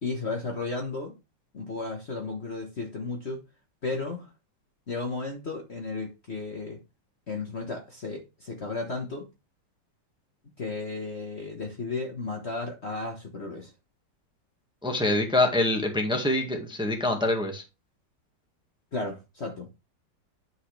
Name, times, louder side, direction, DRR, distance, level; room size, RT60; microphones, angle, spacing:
voice 1, 0.0-1.1 1.5-3.4 3.8-4.3 4.9-6.8 7.3-9.3 10.6-13.7 18.9-19.7, left 3 dB, 40° left, 1.4 m, -34 dB
voice 2, 14.8-17.6, left 1 dB, 5° right, 1.4 m, -25 dB
9.6 x 5.5 x 3.3 m
omnidirectional pair, 2.0 m